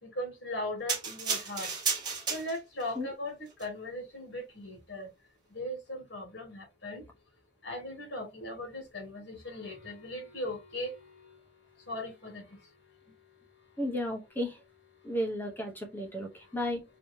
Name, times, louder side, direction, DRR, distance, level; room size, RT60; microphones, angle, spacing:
voice 1, 0.0-1.7 2.3-5.1 5.5-7.0 7.6-11.4 11.9-12.6, left 1 dB, 75° left, 2.0 m, -39 dB
sound 1, 0.9-2.9 3.5-3.7, right 5 dB, 25° right, 1.6 m, -33 dB
voice 2, 13.8-14.6 15.0-16.8, left 1 dB, 10° left, 0.9 m, -33 dB
4.7 x 3.0 x 2.7 m
head